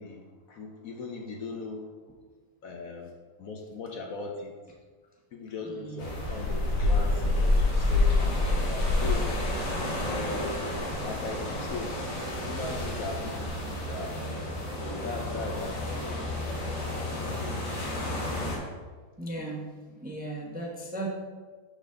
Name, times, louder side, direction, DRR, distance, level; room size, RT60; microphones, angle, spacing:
voice 1, 0.0-1.9 2.6-4.6 5.3-9.3 10.0-10.7 11.0-11.9 12.4-14.2 14.8-16.2 17.2-17.6, left 3 dB, 60° left, 1 dB, 1.1 m, -39 dB
voice 2, 5.6-6.0 16.4-16.5 19.2-21.1, right 2 dB, 5° right, -3 dB, 0.7 m, -40 dB
sound 1, 6.0-18.6, left 2 dB, 80° left, 2.7 m, -29 dB
11.5 x 4.1 x 3.8 m, 1.5 s
omnidirectional pair, 1.9 m